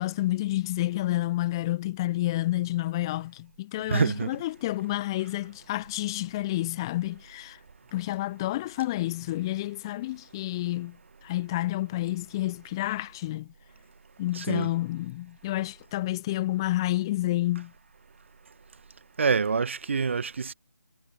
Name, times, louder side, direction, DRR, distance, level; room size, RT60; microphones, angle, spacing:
voice 1, 0.0-7.6 7.9-11.0 11.2-13.5 14.2-17.7, left 16 dB, 15° left, 0.9 m, -29 dB
voice 2, 3.9-4.4 14.3-14.7 19.2-20.5, right 5 dB, 40° right, 1.1 m, -26 dB
figure-of-eight pair, 155°, 10 cm